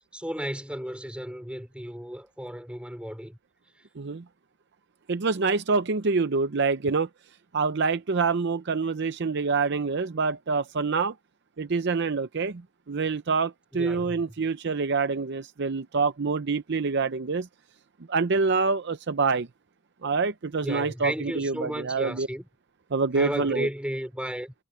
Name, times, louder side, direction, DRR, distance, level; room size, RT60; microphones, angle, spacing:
voice 1, 0.0-3.4 13.7-14.2 20.6-22.5 23.1-24.5, equal, 5° right, 4.6 m, -34 dB
voice 2, 5.1-7.1 7.5-11.1 11.6-12.6 12.9-17.5 18.1-19.5 20.0-22.3 22.9-23.7, right 4 dB, 55° right, 0.6 m, -26 dB
head